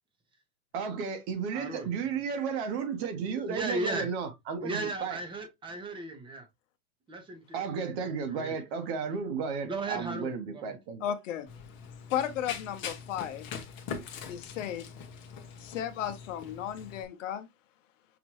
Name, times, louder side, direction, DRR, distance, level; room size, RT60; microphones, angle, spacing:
voice 1, 0.7-5.2 7.5-11.0, right 6 dB, 45° right, 1.3 m, -33 dB
voice 2, 1.5-1.9 3.3-4.1 4.6-6.5 7.1-8.5 9.6-10.8, right 2 dB, 10° right, 0.9 m, -36 dB
voice 3, 11.0-11.5 12.1-13.5 14.3-14.8 15.6-17.5, left 10 dB, 55° left, 0.9 m, -34 dB
Run, 11.5-17.0, left 6 dB, 25° left, 0.9 m, -42 dB
6.0 x 2.6 x 3.0 m
hypercardioid pair, 140°, 44 cm